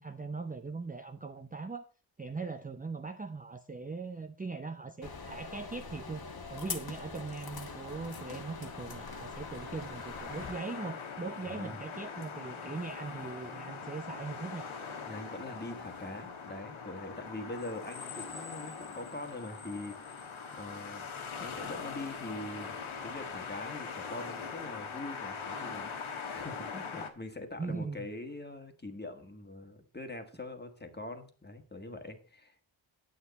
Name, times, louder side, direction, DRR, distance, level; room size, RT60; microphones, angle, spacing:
voice 1, 0.0-1.8 2.2-14.7 27.6-28.1, right 4 dB, 20° right, 6 dB, 0.6 m, -40 dB
sound 1, 5.0-10.5, left 4 dB, 50° left, 1.5 m, -43 dB
sound 2, 7.4-27.1, left 5 dB, 80° left, 1.5 m, -42 dB
voice 2, 11.4-11.8 15.0-20.3 20.6-21.1 21.4-32.5, left 2 dB, 20° left, 5 dB, 1.6 m, -43 dB
9.4 x 8.5 x 4.1 m, 0.39 s
wide cardioid pair, 90°, 48 cm